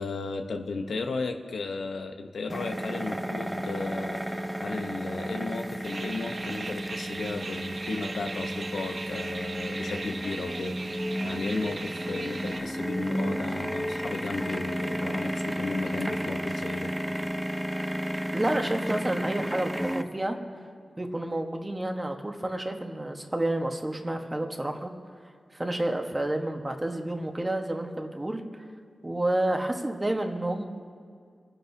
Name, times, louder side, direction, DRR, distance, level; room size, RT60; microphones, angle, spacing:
voice 1, 0.0-16.9, left 3 dB, 85° left, 5 dB, 0.9 m, -35 dB
sound 1, 2.5-20.0, equal, 5° right, 0.6 m, -32 dB
sound 2, 5.8-12.6, right 3 dB, 50° right, 0.6 m, -39 dB
voice 2, 18.3-20.4 21.0-24.9 25.5-28.7 29.0-30.7, right 1 dB, 20° right, 3 dB, 1.2 m, -30 dB
27.5 x 10.5 x 2.7 m, 2.2 s
wide cardioid pair, 105°, 0 cm